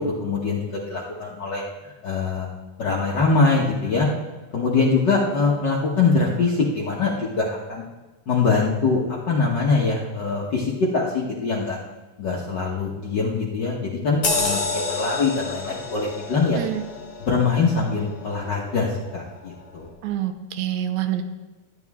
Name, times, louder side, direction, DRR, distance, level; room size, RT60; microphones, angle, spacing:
voice 1, 0.0-1.6 2.0-2.5 2.8-4.1 4.5-7.8 8.3-11.8 12.2-16.6 17.3-19.9, left 4 dB, 75° left, -3 dB, 1.0 m, -23 dB
sound 1, 14.2-19.2 19.6-19.8, left 3 dB, 35° left, 2.8 m, -30 dB
voice 2, 16.5-16.8 20.0-21.2, right 11 dB, 75° right, 8 dB, 1.9 m, -26 dB
13.5 x 9.3 x 3.5 m, 1.2 s
omnidirectional pair, 3.8 m